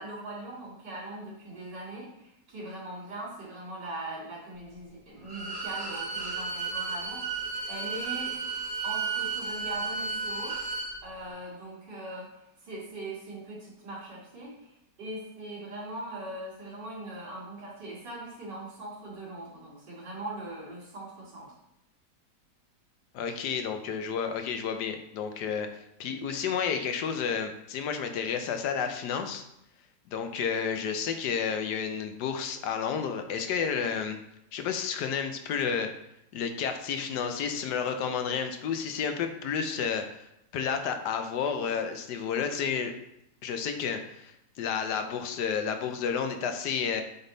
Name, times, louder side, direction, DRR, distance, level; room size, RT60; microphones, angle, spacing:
voice 1, 0.0-8.3 8.8-10.5 11.0-21.5, right 1 dB, 90° right, -5 dB, 3.0 m, -41 dB
Bowed string instrument, 5.2-10.9, right 4 dB, 35° right, 3.1 m, -33 dB
voice 2, 23.1-29.4 30.1-34.2 34.5-35.9 36.3-40.3 40.5-42.9 43.4-47.0, left 6 dB, 75° left, 7 dB, 1.2 m, -31 dB
8.1 x 3.6 x 3.9 m, 0.79 s
omnidirectional pair, 1.8 m